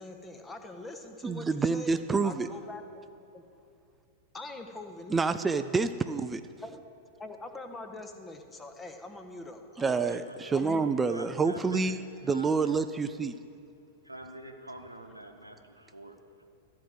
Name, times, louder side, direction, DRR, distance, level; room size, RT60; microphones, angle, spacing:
voice 1, 0.0-1.9 2.2-3.0 3.3-3.4 4.3-5.2 5.6-5.7 6.6-6.8 7.2-10.2 10.5-10.8 11.2-11.3, left 2 dB, 15° left, 6 dB, 0.8 m, -43 dB
voice 2, 1.2-2.5 5.1-6.4 9.8-12.0 12.3-13.4, right 4 dB, 15° right, 10 dB, 0.3 m, -28 dB
voice 3, 9.8-10.8 11.0-12.0 12.2-12.7 14.0-16.4, right 1 dB, 90° right, 4 dB, 0.8 m, -47 dB
12.5 x 4.7 x 7.7 m, 2.5 s
figure-of-eight pair, 95°, 0 cm